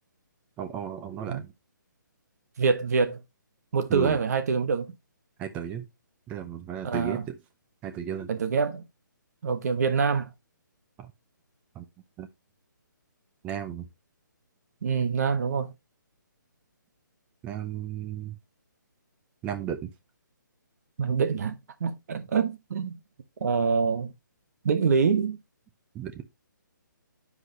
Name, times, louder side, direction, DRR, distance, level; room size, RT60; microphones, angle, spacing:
voice 1, 0.6-1.5 3.9-4.2 5.4-5.9 6.3-7.4 7.8-8.3 11.0-11.1 11.7-11.8 12.2-12.3 13.4-13.9 17.4-18.4 19.4-19.9 25.9-26.2, right 9 dB, 15° right, 0.6 m, -34 dB
voice 2, 2.6-3.2 3.7-4.9 6.8-7.2 8.3-8.8 9.4-10.3 14.8-15.7 21.0-23.0 23.4-24.1 24.6-25.4, right 5 dB, 50° right, 1.1 m, -25 dB
9.8 x 4.9 x 2.7 m
hypercardioid pair, 155°, 11 cm